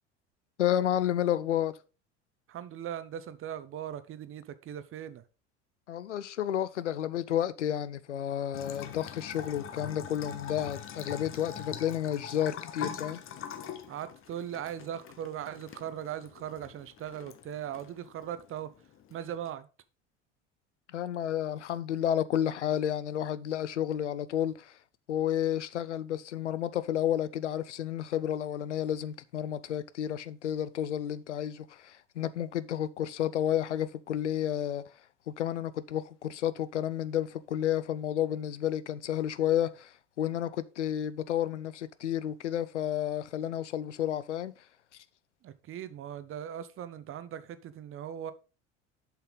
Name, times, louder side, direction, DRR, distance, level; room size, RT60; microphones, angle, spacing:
voice 1, 0.6-1.7 5.9-13.2 20.9-24.8 25.1-34.8 35.3-44.5, left 10 dB, 85° left, 0.5 m, -31 dB
voice 2, 2.5-5.2 13.9-18.7 19.1-19.7 45.4-48.3, right 10 dB, 40° right, 0.8 m, -39 dB
Bathtub (filling or washing) / Trickle dribble, 8.5-19.5, left 8 dB, 35° left, 1.0 m, -43 dB
7.3 x 5.7 x 3.9 m
hypercardioid pair, 70°, 35 cm